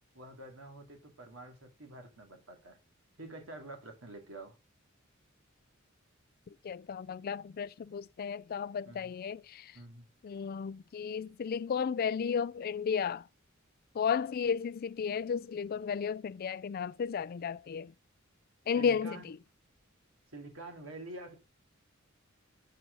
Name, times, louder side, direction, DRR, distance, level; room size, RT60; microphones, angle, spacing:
voice 1, 0.1-2.8 3.2-4.6 8.9-9.1 9.7-10.1 18.7-19.3 20.3-21.4, right 2 dB, 85° right, 2.4 m, -47 dB
voice 2, 6.6-9.7 10.2-13.3 13.9-17.9 18.7-19.4, left 6 dB, 45° left, 0.3 m, -33 dB
7.7 x 6.0 x 3.9 m
head